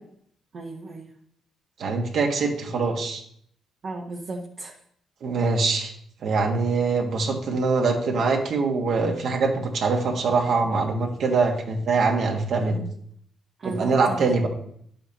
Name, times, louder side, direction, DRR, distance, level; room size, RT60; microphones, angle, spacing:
voice 1, 0.5-1.1 3.8-4.8 13.6-14.5, right 3 dB, 50° right, -1 dB, 1.1 m, -35 dB
voice 2, 1.8-3.2 5.2-5.9 6.2-12.9 13.6-14.5, right 4 dB, 65° right, 1 dB, 1.7 m, -23 dB
10.5 x 7.6 x 2.9 m, 0.68 s
cardioid pair, 90°, 0 cm